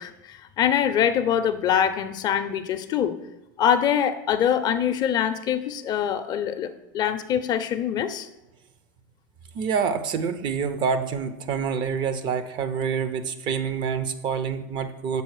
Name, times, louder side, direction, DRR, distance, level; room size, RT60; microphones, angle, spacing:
voice 1, 0.0-3.1 3.6-8.3, left 9 dB, 40° left, 10 dB, 0.5 m, -24 dB
voice 2, 9.5-15.2, right 6 dB, 45° right, 11 dB, 0.6 m, -27 dB
6.8 x 4.1 x 4.8 m, 0.98 s
hypercardioid pair, 100°, 11 cm